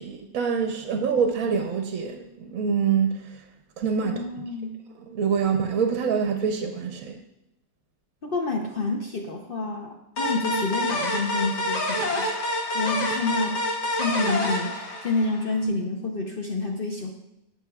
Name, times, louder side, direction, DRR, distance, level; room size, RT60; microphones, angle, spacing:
voice 1, 0.0-3.4 3.8-4.5 5.1-7.2, right 6 dB, 65° right, 1.0 m, -25 dB
voice 2, 4.0-4.8 8.2-12.3 12.7-13.6 13.9-17.1, left 3 dB, 50° left, 0.6 m, -28 dB
sound 1, 10.2-15.6, left 1 dB, 75° left, 2.0 m, -27 dB
13.5 x 5.8 x 2.3 m
omnidirectional pair, 1.8 m